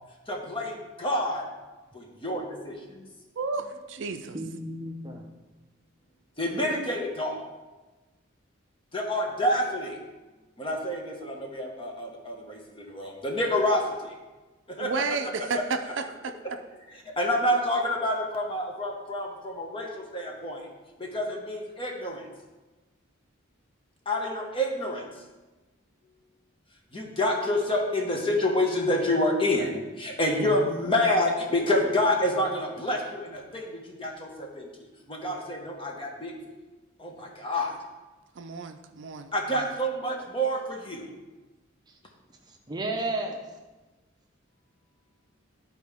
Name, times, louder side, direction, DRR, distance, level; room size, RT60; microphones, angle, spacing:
voice 1, 0.3-1.5 1.9-2.8 6.4-7.4 8.9-10.0 10.6-14.1 14.7-14.9 17.0-20.7 21.0-22.3 24.0-25.0 26.9-36.3 37.0-37.8 39.3-41.1, left 1 dB, 25° left, 0 dB, 1.1 m, -28 dB
voice 2, 3.4-4.4 14.8-16.3 38.4-39.7, right 4 dB, 60° right, 7 dB, 0.4 m, -32 dB
voice 3, 4.1-5.2 42.5-43.4, right 2 dB, 20° right, 2 dB, 0.7 m, -33 dB
11.5 x 4.3 x 3.5 m, 1.2 s
head